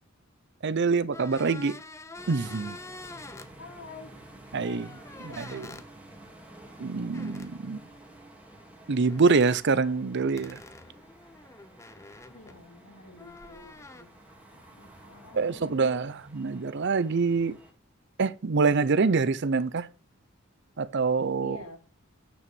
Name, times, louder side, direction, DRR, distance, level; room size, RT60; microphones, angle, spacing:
voice 1, 0.6-1.8 2.3-2.8 4.5-5.7 6.8-7.8 8.9-10.6 15.3-17.6 18.2-19.9 20.8-21.6, right 4 dB, 55° right, 0.6 m, -25 dB
sound 1, 1.1-3.5 4.6-5.9 7.1-7.5 9.0-9.6 10.4-12.7 13.2-14.0, left 2 dB, 15° left, 0.7 m, -46 dB
sound 2, 2.2-17.7, right 1 dB, 5° right, 2.3 m, -51 dB
voice 2, 3.6-4.1 5.2-5.8 12.3-14.1 14.5-16.0 21.4-21.8, left 3 dB, 65° left, 2.4 m, -48 dB
9.5 x 6.1 x 6.0 m
head